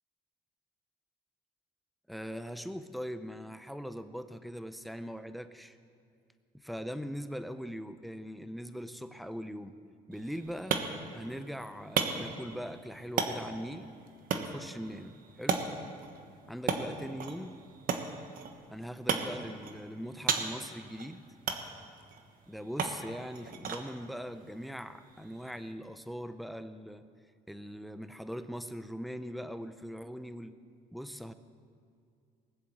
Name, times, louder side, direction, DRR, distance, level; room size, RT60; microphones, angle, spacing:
voice 1, 2.1-5.8 6.5-9.7 10.1-10.8 11.1-13.9 14.3-15.6 16.5-17.6 18.7-21.2 22.5-27.0 27.5-30.6 30.9-31.3, equal, ahead, 11 dB, 0.7 m, -41 dB
sound 1, 10.1-25.7, right 6 dB, 55° right, 1.3 m, -37 dB
19.5 x 7.6 x 7.8 m, 2.4 s
cardioid pair, 110°, 17 cm